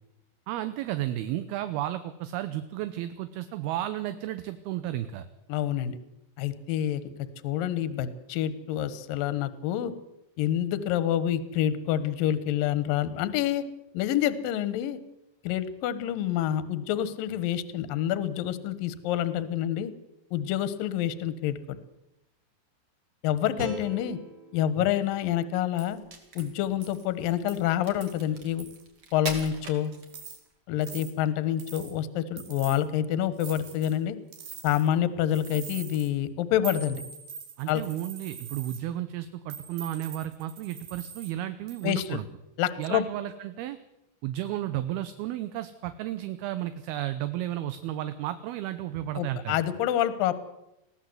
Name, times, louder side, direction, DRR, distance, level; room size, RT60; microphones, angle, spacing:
voice 1, 0.5-5.3 24.8-24.9 37.6-42.3 42.8-43.8 44.2-49.6, right 13 dB, 75° right, 11 dB, 2.5 m, -33 dB
voice 2, 5.5-6.0 6.4-7.0 7.4-9.9 10.4-13.6 13.9-15.0 15.4-19.9 20.3-21.8 23.2-24.2 24.5-26.0 26.4-28.7 29.1-29.9 30.7-34.2 34.6-37.0 37.7-37.8 41.8-42.2 42.6-43.0 49.2-50.3, left 11 dB, 65° left, 14 dB, 2.6 m, -27 dB
sound 1, 23.6-26.7, left 1 dB, 20° right, 2.2 m, -42 dB
sound 2, 25.8-25.9 26.4-26.5 26.8-27.0 27.5-27.6 28.0-28.3 28.6-28.8 29.3-29.7 30.1-30.4 30.8-31.1 31.6-31.9 32.4-32.8 33.4-34.0 34.3-34.9 35.3-36.1 36.6-38.8 39.5-41.3 41.7-42.0, right 6 dB, 60° right, 4.4 m, -43 dB
Crack, 26.0-30.5, right 3 dB, 40° right, 3.1 m, -42 dB
21.5 x 16.0 x 7.9 m, 0.88 s
omnidirectional pair, 4.9 m